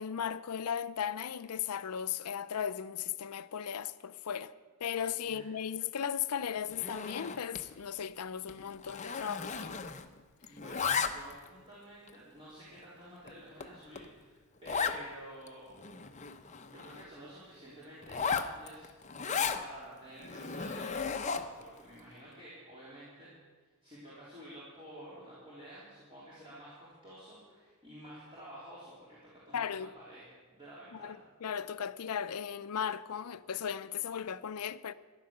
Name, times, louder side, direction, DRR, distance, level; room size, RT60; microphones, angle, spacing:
voice 1, 0.0-4.5 4.8-9.9 19.3-19.4 29.5-29.9 31.0-34.9, left 8 dB, 85° left, 0.5 m, -36 dB
voice 2, 5.0-5.5 10.5-16.0 16.7-18.9 19.5-23.3 23.8-31.3, right 1 dB, 25° right, 3.6 m, -51 dB
Zipper (clothing), 6.7-7.7 8.0-8.2 8.5-10.2 10.4-11.5 12.1-12.2 12.8-12.9 13.3-13.4 13.6-13.7 13.9-14.1 14.6-15.0 15.5-15.6 15.8-17.1 18.0-19.6 20.2-21.6, left 6 dB, 30° left, 0.7 m, -35 dB
14.0 x 11.0 x 6.6 m
head